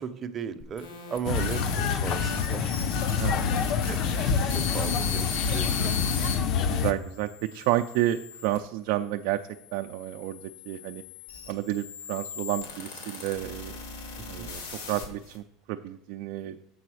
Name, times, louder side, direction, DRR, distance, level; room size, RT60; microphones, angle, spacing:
voice 1, 0.0-2.7 3.8-6.3 14.2-14.5, right 7 dB, 30° right, 9 dB, 0.7 m, -36 dB
sound 1, 0.6-6.4 7.0-8.6 9.4-15.4, left 5 dB, 85° left, 2.2 m, -38 dB
sound 2, 1.2-6.9, left 6 dB, 50° left, 0.6 m, -27 dB
voice 2, 3.2-3.5 6.7-9.4 9.7-11.0 11.5-13.8 14.3-16.6, right 14 dB, 65° right, 6 dB, 0.4 m, -30 dB
7.7 x 4.0 x 6.3 m, 0.83 s
supercardioid pair, 130°, 0 cm